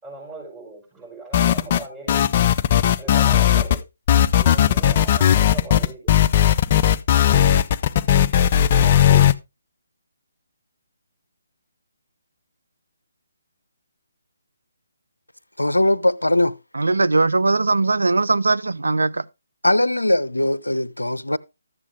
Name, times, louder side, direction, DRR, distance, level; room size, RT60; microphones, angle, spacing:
voice 1, 0.0-2.3 3.0-3.8 4.3-6.1 8.8-9.3, right 2 dB, 10° right, 5.7 m, -38 dB
sound 1, 1.3-1.8 2.1-3.8 4.1-9.3, left 10 dB, 35° left, 0.5 m, -17 dB
voice 2, 15.6-16.5 19.6-21.4, left 1 dB, 85° left, 0.7 m, -20 dB
voice 3, 16.7-19.2, right 3 dB, 75° right, 0.5 m, -20 dB
13.5 x 7.3 x 3.4 m
figure-of-eight pair, 145°, 0 cm